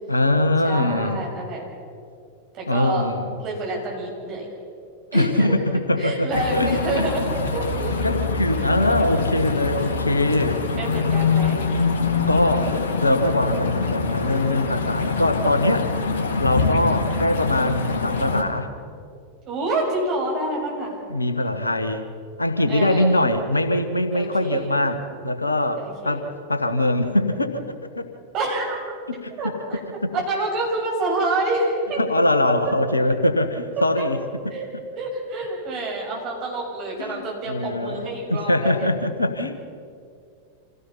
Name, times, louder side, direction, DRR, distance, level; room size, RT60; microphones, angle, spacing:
voice 1, 0.1-1.2 2.7-3.3 5.1-7.1 8.0-10.6 12.3-12.7 13.0-15.9 16.4-18.7 21.1-22.1 22.4-28.1 29.2-29.3 32.0-34.2 37.0-39.5, left 1 dB, 80° left, 8 dB, 1.2 m, -22 dB
voice 2, 0.6-1.6 2.5-3.1 3.4-4.5 5.1-5.5 6.0-8.0 8.4-8.6 8.8-9.1 10.8-11.6 19.5-21.0 22.7-23.1 24.1-24.7 25.8-26.3 28.3-28.8 29.4-29.8 30.1-32.0 34.0-34.1 34.5-34.7 35.0-38.9, right 2 dB, 35° right, -2 dB, 6.9 m, -28 dB
sound 1, 6.3-18.4, left 4 dB, 60° left, 2.2 m, -24 dB
27.0 x 17.0 x 5.7 m, 2.4 s
figure-of-eight pair, 90°, 0 cm